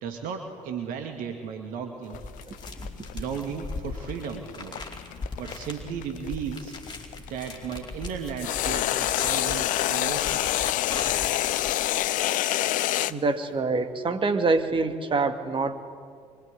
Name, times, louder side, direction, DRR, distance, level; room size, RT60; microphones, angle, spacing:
voice 1, 0.0-2.2 3.1-4.9 5.3-6.8 7.3-10.5, right 7 dB, 60° right, 5 dB, 2.3 m, -35 dB
sound 1, 2.1-7.3 8.4-13.1, left 14 dB, 55° left, 0.8 m, -27 dB
sound 2, 2.1-12.3, left 3 dB, 25° left, 4.6 m, -39 dB
voice 2, 13.1-15.8, right 3 dB, 30° right, 7 dB, 2.5 m, -25 dB
24.0 x 24.0 x 9.8 m, 2.1 s
figure-of-eight pair, 55°, 16 cm